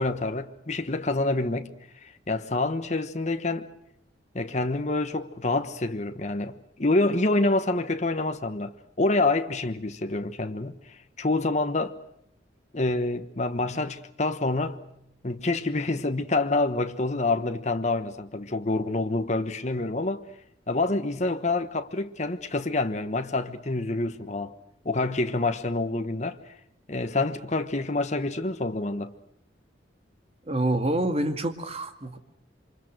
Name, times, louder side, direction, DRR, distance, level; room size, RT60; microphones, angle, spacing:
voice 1, 0.0-1.7 2.0-3.7 4.3-12.0 12.7-14.8 15.2-20.2 20.7-24.5 24.8-26.5 26.9-29.1, left 2 dB, 40° left, 1.2 m, -27 dB
voice 2, 30.5-32.2, right 1 dB, 35° right, 2.1 m, -27 dB
27.5 x 25.0 x 6.2 m
head